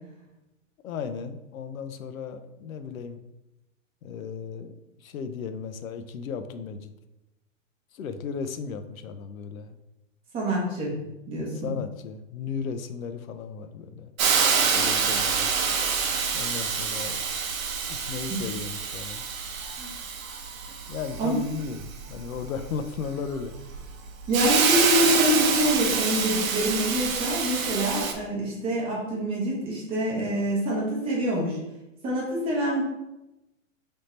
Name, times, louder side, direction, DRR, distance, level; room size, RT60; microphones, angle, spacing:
voice 1, 0.8-3.2 4.0-6.9 7.9-9.8 10.9-11.2 11.5-14.1 14.7-15.6 16.3-17.2 17.9-19.2 20.9-23.6, left 6 dB, 90° left, 9 dB, 0.6 m, -35 dB
voice 2, 10.3-10.9 11.3-11.7 19.8-19.9 21.2-21.4 24.3-31.6 32.0-32.8, equal, 15° right, -4 dB, 0.7 m, -26 dB
Hiss, 14.2-28.1, right 6 dB, 85° right, 0.8 m, -27 dB
3.5 x 2.7 x 4.2 m, 0.95 s
hypercardioid pair, 150°, 40 cm